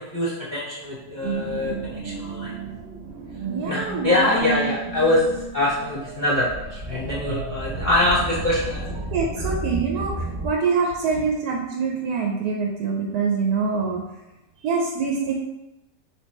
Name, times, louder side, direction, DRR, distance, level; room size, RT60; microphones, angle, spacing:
voice 1, 0.0-2.5 3.6-5.3 5.5-8.8, left 1 dB, 40° left, -7 dB, 0.7 m, -24 dB
sound 1, 1.2-10.5, right 3 dB, 50° right, 0.9 m, -32 dB
voice 2, 3.5-4.6 9.1-14.0 14.6-15.3, right 5 dB, 85° right, 0 dB, 1.2 m, -25 dB
3.4 x 3.2 x 4.2 m, 0.96 s
omnidirectional pair, 1.7 m